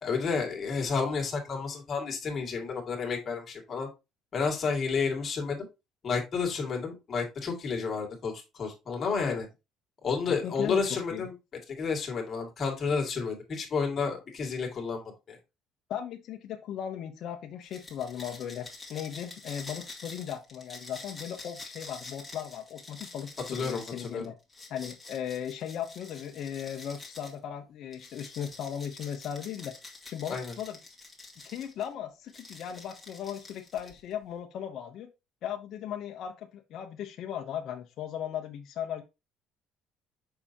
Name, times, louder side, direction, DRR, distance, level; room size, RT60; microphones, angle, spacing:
voice 1, 0.0-3.9 4.3-5.6 6.0-9.5 10.0-11.3 11.7-15.0 15.3-15.4 23.5-24.2 30.3-30.5, left 5 dB, 30° left, 2.2 m, -31 dB
voice 2, 10.3-11.2 15.9-24.3 24.7-29.7 30.0-30.8 31.4-35.1 35.4-39.0, left 9 dB, 50° left, 0.8 m, -37 dB
sound 1, 17.6-27.4 27.9-31.9 32.3-34.1, left 3 dB, 5° left, 1.9 m, -47 dB
6.8 x 5.6 x 2.9 m
cardioid pair, 150°, 0 cm